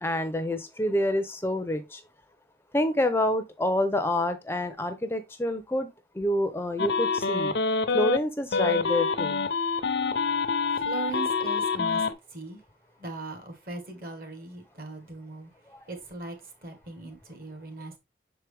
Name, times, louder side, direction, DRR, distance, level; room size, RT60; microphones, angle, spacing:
voice 1, 0.0-2.0 2.7-5.9 6.2-7.5 7.9-9.4 15.7-15.8, left 1 dB, 15° left, 0.5 m, -27 dB
sound 1, 6.8-8.2 8.5-12.1, left 4 dB, 80° left, 0.7 m, -26 dB
voice 2, 10.7-12.6 13.0-15.5 15.8-18.0, right 2 dB, 55° right, 1.9 m, -39 dB
6.5 x 4.5 x 3.4 m
head